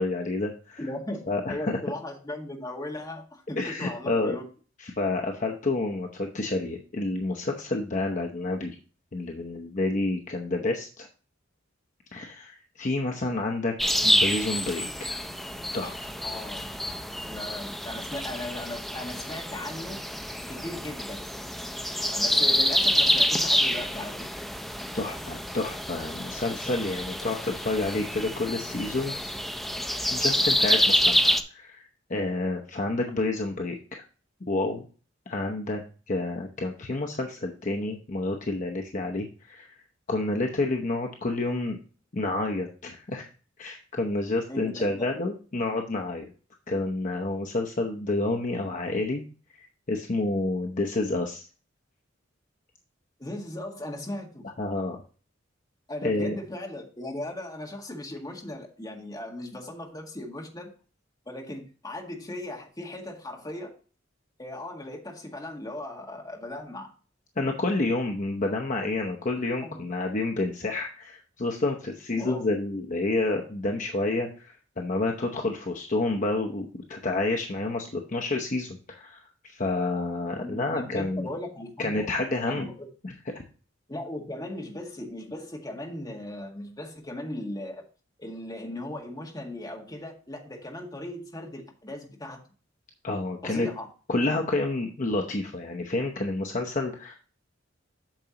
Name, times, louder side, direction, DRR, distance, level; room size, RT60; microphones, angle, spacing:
voice 1, 0.0-0.8 1.3-1.8 3.6-4.3 4.8-8.8 9.1-11.1 12.1-13.7 14.0-15.2 15.7-16.1 24.9-29.4 30.1-34.0 34.5-34.9 35.3-35.8 36.1-39.8 40.1-41.8 42.1-43.3 43.6-46.3 46.7-49.2 49.6-51.5 54.6-55.0 56.0-56.4 67.4-81.3 81.8-82.7 83.0-83.1 93.0-93.7 94.1-97.2, left 2 dB, 40° left, 1 dB, 0.8 m, -29 dB
voice 2, 0.8-4.5 16.2-16.9 17.2-20.0 20.5-21.3 22.0-24.3 44.5-45.1 53.2-54.5 55.9-60.7 61.3-63.7 64.4-66.9 69.6-69.9 72.1-72.4 80.4-82.1 82.5-82.9 83.9-87.8 88.2-92.4 93.4-93.9, left 1 dB, 20° left, 0 dB, 1.8 m, -37 dB
sound 1, 13.8-31.4, equal, ahead, 0.6 m, -27 dB
8.8 x 6.8 x 2.9 m, 0.38 s
head